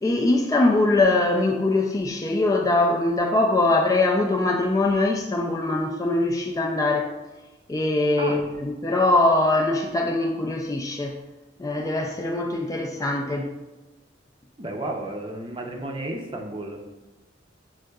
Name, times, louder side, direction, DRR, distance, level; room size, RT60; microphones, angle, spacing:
voice 1, 0.0-7.1 7.7-11.1 11.6-13.5, left 2 dB, 20° left, 1 dB, 0.3 m, -22 dB
voice 2, 14.6-16.8, right 2 dB, 30° right, 1 dB, 0.6 m, -32 dB
6.3 x 3.6 x 2.3 m, 1.1 s
head